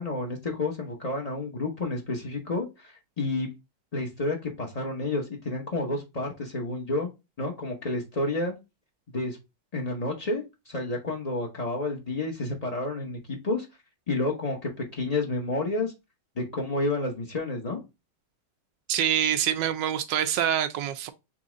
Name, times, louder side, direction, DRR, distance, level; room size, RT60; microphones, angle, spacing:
voice 1, 0.0-3.5 3.9-7.1 7.4-8.5 9.1-9.4 9.7-13.7 14.1-15.9 16.4-17.8, left 2 dB, 85° left, 0.3 m, -30 dB
voice 2, 18.9-21.1, right 10 dB, 80° right, 1.3 m, -25 dB
4.1 x 3.0 x 3.7 m
omnidirectional pair, 2.0 m